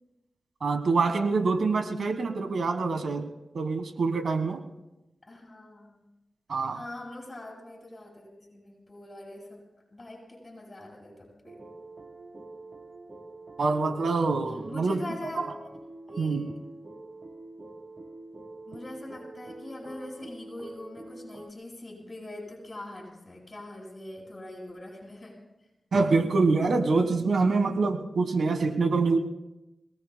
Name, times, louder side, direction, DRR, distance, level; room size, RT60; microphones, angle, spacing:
voice 1, 0.6-3.3 3.5-4.6 6.5-6.8 13.6-15.0 15.4-15.5 16.2-16.5 25.9-29.2, right 4 dB, 80° right, 7 dB, 1.4 m, -25 dB
voice 2, 5.2-6.0 6.5-9.7 9.9-11.6 14.7-15.5 16.1-16.4 18.7-25.4, left 1 dB, 45° left, -3 dB, 7.8 m, -43 dB
sound 1, 11.5-21.5, right 2 dB, 45° right, 1.2 m, -46 dB
28.0 x 18.5 x 2.2 m, 0.96 s
cardioid pair, 40°, 0 cm